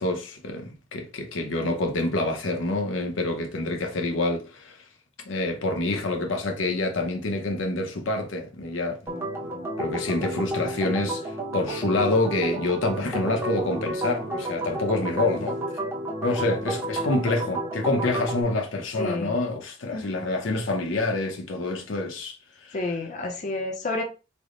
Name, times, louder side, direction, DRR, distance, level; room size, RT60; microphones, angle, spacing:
voice 1, 0.0-4.8 5.3-9.0 9.8-15.6 16.2-22.8, left 2 dB, 80° left, 0.7 m, -27 dB
Organ, 9.1-18.4, right 1 dB, 15° right, 0.7 m, -31 dB
voice 2, 19.0-19.3 19.9-20.1 22.7-24.0, left 2 dB, 40° left, 0.5 m, -29 dB
3.4 x 2.1 x 3.7 m
head